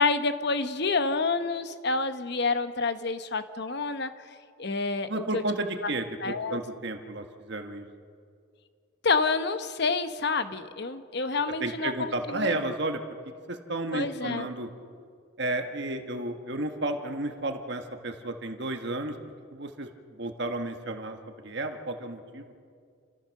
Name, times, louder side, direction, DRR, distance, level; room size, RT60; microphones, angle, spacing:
voice 1, 0.0-4.1 4.6-5.4 5.8-5.9 6.2-6.6 9.0-12.6 13.9-14.5, left 4 dB, 50° left, 10 dB, 1.0 m, -28 dB
voice 2, 5.1-7.8 11.6-13.0 13.5-14.7 15.4-19.1 19.5-19.9 20.2-21.2 21.4-22.5, right 2 dB, 55° right, 5 dB, 1.5 m, -32 dB
29.0 x 14.5 x 6.5 m, 2.2 s
head